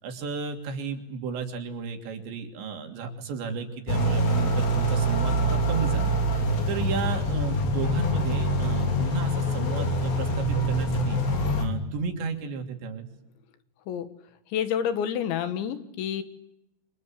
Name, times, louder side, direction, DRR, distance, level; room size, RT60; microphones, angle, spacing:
voice 1, 0.0-6.1 6.7-11.2 11.6-13.1, right 5 dB, 75° right, 5 dB, 5.2 m, -33 dB
sound 1, 3.9-11.7, right 1 dB, 55° left, 5.0 m, -25 dB
voice 2, 14.5-16.2, left 8 dB, 80° left, 11 dB, 4.0 m, -28 dB
30.0 x 25.5 x 7.7 m, 0.86 s
omnidirectional pair, 5.2 m